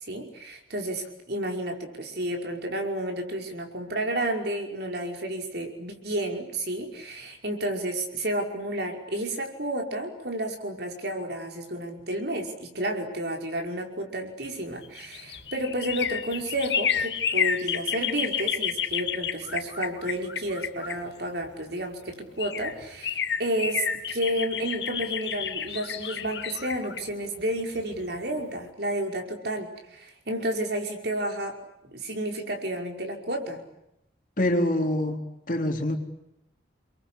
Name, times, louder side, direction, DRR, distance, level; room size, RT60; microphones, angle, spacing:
voice 1, 0.0-31.6 31.9-33.6, right 1 dB, 55° right, 3 dB, 5.3 m, -31 dB
sound 1, 14.7-21.5 22.1-22.2 22.4-28.2 28.5-28.6, left 8 dB, 60° left, 2.4 m, -30 dB
voice 2, 34.4-35.2 35.5-36.0, left 1 dB, 45° left, 3 dB, 3.8 m, -25 dB
29.5 x 23.5 x 8.6 m, 0.82 s
head